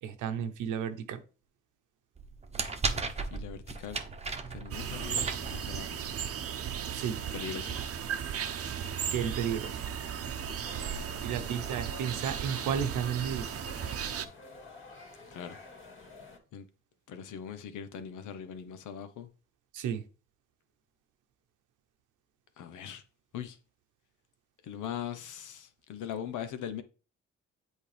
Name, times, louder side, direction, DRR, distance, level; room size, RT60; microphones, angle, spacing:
voice 1, 0.0-1.2 6.9-7.2 9.1-9.8 11.2-13.5 19.7-20.0, right 8 dB, 85° right, 1.0 m, -33 dB
sound 1, 2.2-6.1, right 4 dB, 20° right, 0.9 m, -36 dB
voice 2, 3.1-4.0 4.5-6.0 7.3-7.8 15.3-15.6 16.5-16.7 17.1-19.3 22.6-23.0 23.3-23.6 24.6-26.8, left 9 dB, 80° left, 0.9 m, -40 dB
sound 2, 4.7-14.3, right 8 dB, 50° right, 0.8 m, -36 dB
sound 3, 10.6-16.4, left 3 dB, 40° left, 2.2 m, -51 dB
8.2 x 4.6 x 3.4 m
cardioid pair, 90°, 30 cm